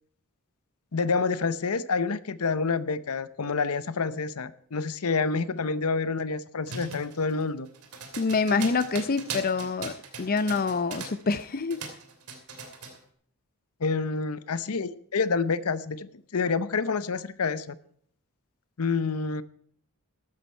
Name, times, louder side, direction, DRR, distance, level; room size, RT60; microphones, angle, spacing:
voice 1, 0.9-7.7 13.8-17.8 18.8-19.4, left 4 dB, 75° left, 16 dB, 0.7 m, -28 dB
sound 1, 6.7-11.4 11.7-13.0, right 5 dB, 80° right, 2.9 m, -39 dB
voice 2, 8.2-9.9 10.2-11.8, left 4 dB, 40° left, 14 dB, 0.6 m, -26 dB
14.0 x 12.0 x 4.5 m, 0.62 s
head